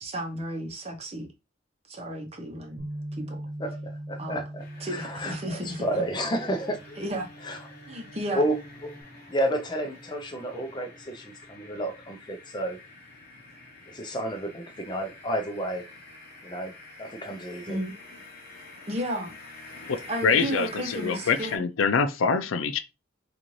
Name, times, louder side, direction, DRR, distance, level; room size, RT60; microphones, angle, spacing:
voice 1, 0.0-1.3 1.9-2.8 3.3-3.4 4.2-4.4 4.8-5.9 7.0-7.3 7.9-8.4 17.6-17.9 18.9-19.3 20.1-21.7, right 1 dB, 30° right, 0.8 m, -33 dB
Bass guitar, 2.8-9.0, right 1 dB, 90° right, 0.9 m, -41 dB
voice 2, 3.6-7.0 7.4-7.6 8.3-8.5 8.8-8.9 9.3-12.8 13.9-15.8 16.4-16.7 17.0-17.8, right 1 dB, 20° left, 0.6 m, -31 dB
sound 1, 4.6-21.6, left 2 dB, 50° left, 0.9 m, -47 dB
voice 3, 20.2-22.8, left 5 dB, 85° left, 0.4 m, -25 dB
3.9 x 2.5 x 3.1 m
head